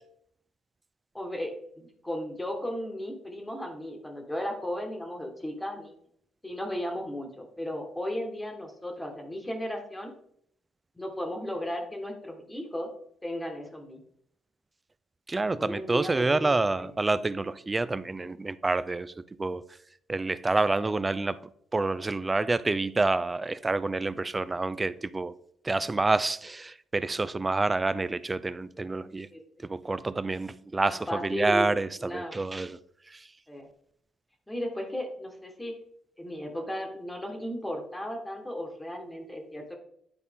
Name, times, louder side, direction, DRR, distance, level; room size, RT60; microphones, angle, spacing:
voice 1, 1.1-5.9 6.4-10.1 11.0-12.9 13.2-14.0 15.6-16.9 18.2-18.3 29.3-29.6 30.9-31.7 32.0-32.4 33.5-33.7 34.5-35.7 36.2-39.8, equal, 10° left, 1.3 m, -35 dB
voice 2, 15.3-19.1 19.4-19.6 20.1-21.4 21.7-25.3 25.6-29.3 29.6-32.8 33.1-33.2, right 3 dB, 20° right, 0.4 m, -28 dB
9.7 x 4.1 x 3.5 m
cardioid pair, 90°, 0 cm